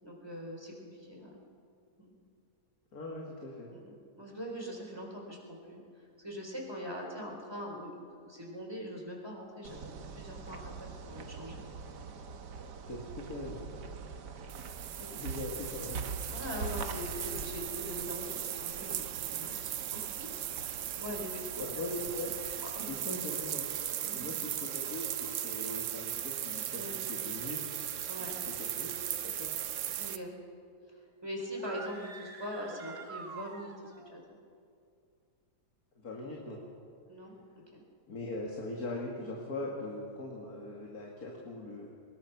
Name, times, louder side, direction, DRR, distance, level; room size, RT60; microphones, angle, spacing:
voice 1, 0.0-1.3 2.0-2.1 3.7-5.8 6.2-11.6 15.0-15.2 16.3-20.3 20.6-21.7 22.8-22.9 24.0-24.3 26.7-27.0 28.1-28.4 30.0-30.3 31.2-34.2 37.1-37.8, equal, 15° right, -1 dB, 4.2 m, -42 dB
voice 2, 2.9-3.7 12.9-13.6 15.2-16.1 21.6-22.3 22.8-23.7 24.1-27.6 28.4-28.9 29.2-29.5 35.9-36.6 38.1-41.9, left 2 dB, 60° left, -2 dB, 2.7 m, -41 dB
sound 1, 9.6-22.8, right 5 dB, 85° right, 1.8 m, -44 dB
sound 2, 14.5-30.2, right 10 dB, 60° right, 0.9 m, -38 dB
sound 3, 31.5-34.1, right 5 dB, 40° right, 1.3 m, -47 dB
23.5 x 21.0 x 6.0 m, 2.4 s
omnidirectional pair, 1.8 m